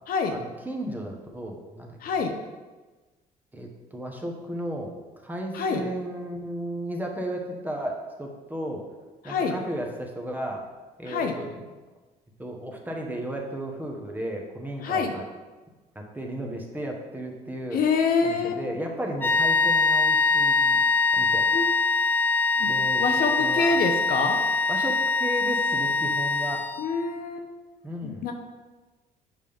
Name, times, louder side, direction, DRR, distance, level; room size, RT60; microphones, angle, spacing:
voice 1, 0.3-2.0 3.5-4.9 5.2-8.9 9.2-10.6 11.0-11.5 12.4-15.2 15.9-17.8 18.2-20.8 21.1-21.5 22.7-23.0 23.4-23.8 24.7-26.6 27.8-28.3, right 1 dB, 10° right, 1 dB, 1.1 m, -34 dB
voice 2, 2.0-2.3 5.5-5.8 9.2-9.6 11.1-11.3 14.8-15.1 17.7-18.5 21.5-21.7 22.6-22.7 23.0-24.4 26.8-27.5 28.0-28.3, left 5 dB, 60° left, 5 dB, 0.8 m, -26 dB
sound 1, 19.2-27.1, left 3 dB, 10° left, 0.4 m, -23 dB
7.5 x 5.3 x 3.5 m, 1.2 s
cardioid pair, 110°, 17 cm